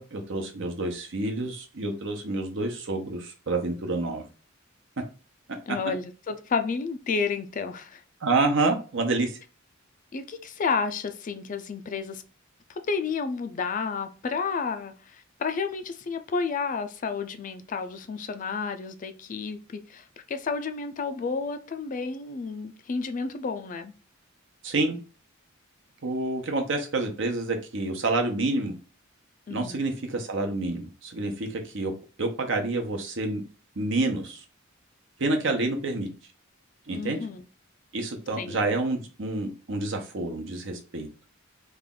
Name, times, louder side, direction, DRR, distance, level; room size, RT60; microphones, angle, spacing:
voice 1, 0.0-4.3 8.2-9.4 24.6-25.0 26.0-28.7 29.5-31.9 32.2-33.4 33.8-34.4 35.2-36.1 36.9-37.2 37.9-41.1, right 2 dB, 65° right, 0.9 m, -28 dB
voice 2, 5.7-8.0 10.1-12.2 12.8-23.9 29.5-29.8 36.9-37.4 38.4-38.6, left 5 dB, 40° left, 0.4 m, -31 dB
3.2 x 2.4 x 3.7 m
head